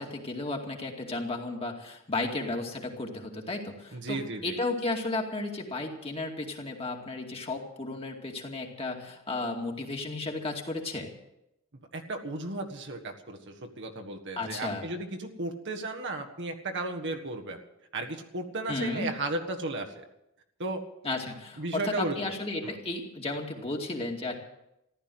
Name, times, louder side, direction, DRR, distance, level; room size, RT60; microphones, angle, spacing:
voice 1, 0.0-11.1 14.4-14.9 18.7-19.1 21.0-24.3, left 2 dB, 30° left, 1 dB, 2.4 m, -34 dB
voice 2, 3.9-4.6 11.9-17.6 17.9-19.9 20.6-20.8 21.6-22.3 22.6-22.8, right 2 dB, 60° right, 3 dB, 1.6 m, -34 dB
15.0 x 12.0 x 7.9 m, 0.86 s
head